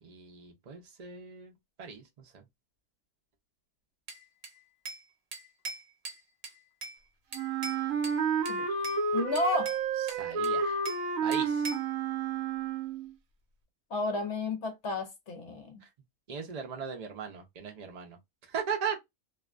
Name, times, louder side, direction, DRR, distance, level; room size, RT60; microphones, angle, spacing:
voice 1, 0.0-2.4 10.0-10.8 11.2-11.7 15.8-15.9 16.3-18.2 18.4-19.0, right 6 dB, 85° right, 0.3 m, -38 dB
Bell / Glass, 4.1-5.1 5.3-7.0 7.3-8.2 8.5-9.0 9.4-11.1 11.3-11.9, right 3 dB, 50° right, 1.0 m, -42 dB
Wind instrument woodwind instrument, 7.3-13.1, right 5 dB, 70° right, 1.0 m, -31 dB
voice 2, 9.1-9.8 13.9-15.8, left 2 dB, 60° left, 0.8 m, -32 dB
2.5 x 2.2 x 2.4 m
omnidirectional pair, 1.6 m